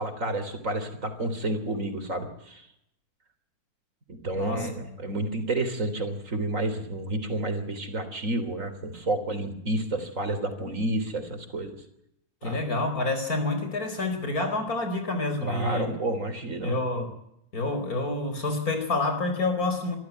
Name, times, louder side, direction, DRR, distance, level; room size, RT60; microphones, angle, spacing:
voice 1, 0.0-2.6 4.1-11.8 12.4-12.6 15.4-16.8, right 2 dB, 55° right, 8 dB, 3.8 m, -30 dB
voice 2, 4.4-4.7 12.4-15.9 16.6-17.1 17.5-20.0, left 2 dB, 70° left, 7 dB, 4.9 m, -28 dB
26.0 x 14.0 x 9.3 m, 0.78 s
omnidirectional pair, 1.6 m